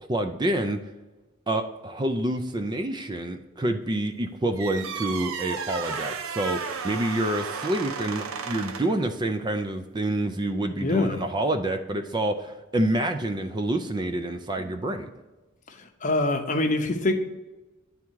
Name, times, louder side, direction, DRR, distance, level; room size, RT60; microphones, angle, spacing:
voice 1, 0.1-0.8 1.5-15.1, right 1 dB, 20° right, 6 dB, 0.4 m, -27 dB
sound 1, 4.6-9.0, right 6 dB, 90° right, 0.6 m, -34 dB
voice 2, 10.8-11.2 15.7-17.1, left 2 dB, 40° left, 5 dB, 0.7 m, -25 dB
9.7 x 3.6 x 4.5 m, 1.1 s
head